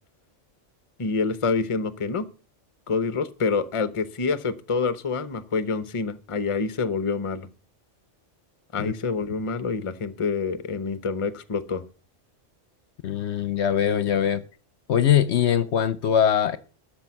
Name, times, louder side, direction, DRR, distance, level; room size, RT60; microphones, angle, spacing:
voice 1, 1.0-2.3 2.9-7.5 8.7-11.8, left 4 dB, 30° left, 13 dB, 0.8 m, -27 dB
voice 2, 13.0-14.4 14.9-16.6, left 9 dB, 65° left, 15 dB, 0.9 m, -22 dB
12.5 x 6.3 x 7.3 m, 0.40 s
omnidirectional pair, 1.3 m